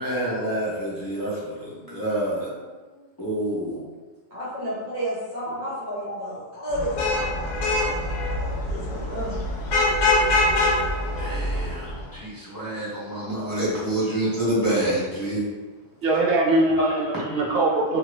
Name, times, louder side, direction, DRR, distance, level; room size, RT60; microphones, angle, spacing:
voice 1, 0.0-2.5 3.2-3.8 5.5-5.6 11.2-15.4 16.7-17.5, right 1 dB, 25° left, -9 dB, 0.5 m, -27 dB
voice 2, 4.3-9.4, equal, 40° right, -9 dB, 0.9 m, -32 dB
Vehicle horn car horn honking / Traffic noise roadway noise, 6.7-12.0, left 2 dB, 75° left, 0.9 m, -24 dB
voice 3, 16.0-18.0, right 2 dB, 65° right, -1 dB, 0.7 m, -22 dB
2.6 x 2.5 x 3.1 m, 1.3 s
omnidirectional pair, 1.3 m